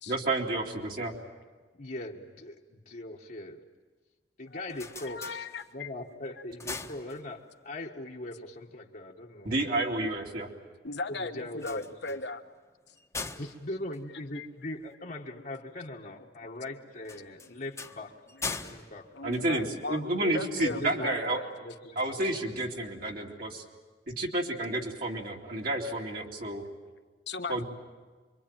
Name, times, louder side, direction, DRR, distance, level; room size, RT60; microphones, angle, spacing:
voice 1, 0.1-1.1 9.4-10.5 19.2-21.4 22.0-23.6 24.1-26.6 27.5-27.6, right 2 dB, 55° right, -1 dB, 2.8 m, -30 dB
voice 2, 1.7-3.6 4.4-5.5 5.7-9.7 11.1-11.8 12.1-12.2 13.2-18.1 18.6-19.1 20.6-22.2, left 1 dB, 50° left, -2 dB, 1.5 m, -41 dB
sound 1, 4.5-6.0 6.4-7.7 11.5-14.9 17.0-20.1, left 4 dB, 15° left, 1.2 m, -42 dB
voice 3, 5.0-5.9 10.0-10.1 10.8-12.4 14.3-14.5 17.3-17.5 18.3-18.4 19.1-21.5 26.5-27.6, left 3 dB, 70° left, 6 dB, 1.5 m, -38 dB
27.0 x 24.0 x 9.0 m, 1.4 s
head